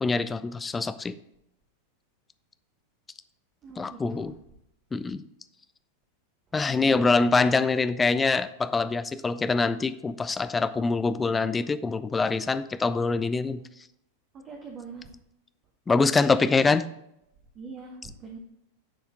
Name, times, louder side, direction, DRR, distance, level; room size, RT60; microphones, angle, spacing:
voice 1, 0.0-1.2 3.8-4.3 4.9-5.2 6.5-13.9 15.9-16.8, left 4 dB, 15° left, 13 dB, 0.4 m, -24 dB
voice 2, 3.6-4.3 6.6-7.1 13.5-13.7 14.3-15.1 16.0-16.8 17.5-18.4, right 4 dB, 30° right, 0 dB, 1.1 m, -43 dB
10.5 x 4.4 x 3.7 m, 0.80 s
figure-of-eight pair, 90°, 0 cm